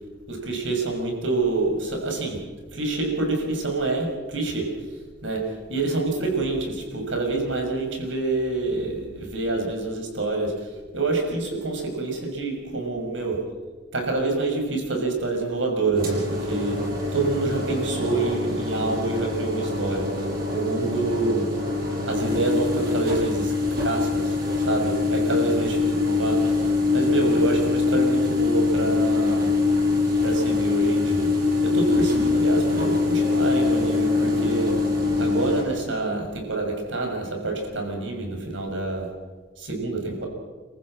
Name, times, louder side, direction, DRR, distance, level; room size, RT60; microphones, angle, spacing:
voice 1, 0.3-2.4 2.7-13.4 13.9-20.2 20.5-21.5 22.0-26.5 26.9-29.5 30.2-31.3 31.6-34.8 35.2-39.1 39.6-40.3, right 3 dB, 70° right, 2 dB, 6.1 m, -27 dB
sound 1, 15.9-35.6, left 3 dB, 50° right, 6.2 m, -24 dB
29.0 x 14.5 x 7.6 m, 1.4 s
head